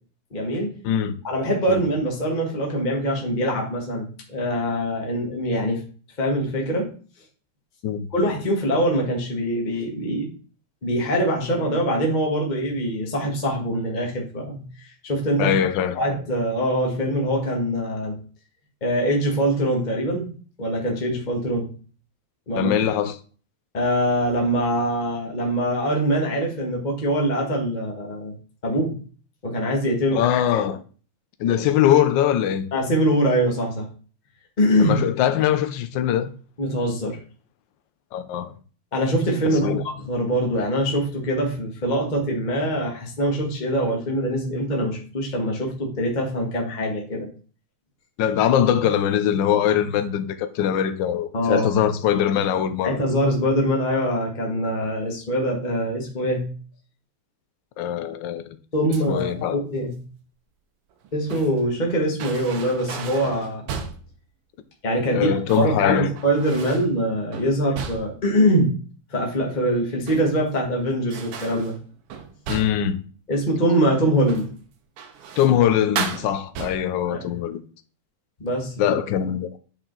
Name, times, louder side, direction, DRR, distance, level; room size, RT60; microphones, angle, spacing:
voice 1, 0.3-0.7 1.2-5.8 6.2-6.9 8.1-10.3 10.8-15.6 16.0-18.2 18.8-21.7 22.5-22.7 23.7-28.4 28.6-29.0 29.4-30.3 32.7-33.9 34.6-35.0 36.6-37.2 38.9-47.3 51.3-51.8 52.8-56.6 58.7-60.0 61.1-63.7 64.8-68.8 69.1-71.8 73.3-74.5 77.0-77.3 78.4-78.8, equal, 25° left, 1.3 m, -23 dB
voice 2, 0.8-1.2 1.7-1.8 7.8-8.1 15.4-16.0 22.6-23.2 30.1-30.8 31.4-32.7 34.8-36.3 38.1-38.5 39.4-39.8 48.2-53.0 57.8-58.4 59.1-59.6 65.1-66.1 72.5-73.0 75.4-77.6 78.8-79.5, left 10 dB, 70° left, 1.3 m, -22 dB
sound 1, 58.9-59.3 60.9-61.7 62.2-64.1 65.3-65.8 66.2-66.9 67.3-68.3 69.8-70.6 71.1-72.9 74.2-74.6 75.0-75.6 76.0-77.0, right 6 dB, 85° right, 1.9 m, -35 dB
8.7 x 4.4 x 3.9 m
omnidirectional pair, 2.4 m